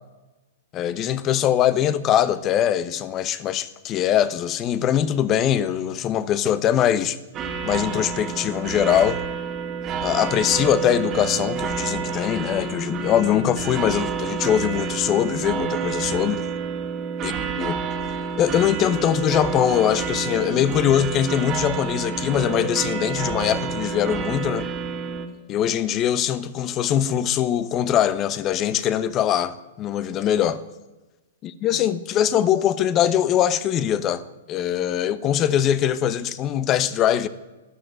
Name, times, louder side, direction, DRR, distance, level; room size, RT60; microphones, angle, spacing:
voice 1, 0.7-7.2 7.6-9.2 10.0-16.4 17.2-17.3 17.6-17.8 18.4-24.7 25.5-30.6 31.4-34.2 34.5-37.3, left 10 dB, 30° left, 1.0 m, -22 dB
sound 1, 7.3-25.3, right 6 dB, 30° right, 2.2 m, -29 dB
13.0 x 12.0 x 9.3 m
hypercardioid pair, 130°, 0 cm